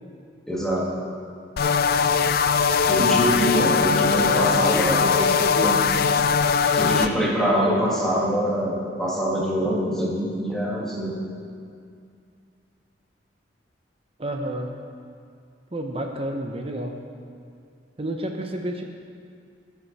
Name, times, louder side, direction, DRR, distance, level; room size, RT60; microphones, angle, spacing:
voice 1, 0.5-0.9 2.9-5.1 5.6-5.8 6.7-11.1, equal, 5° left, -6 dB, 2.2 m, -24 dB
sound 1, 1.6-7.1, left 6 dB, 55° left, 0.4 m, -20 dB
voice 2, 4.2-5.8 14.2-14.7 15.7-17.0 18.0-18.8, right 1 dB, 30° right, 3 dB, 0.8 m, -30 dB
18.5 x 7.1 x 4.2 m, 2.3 s
head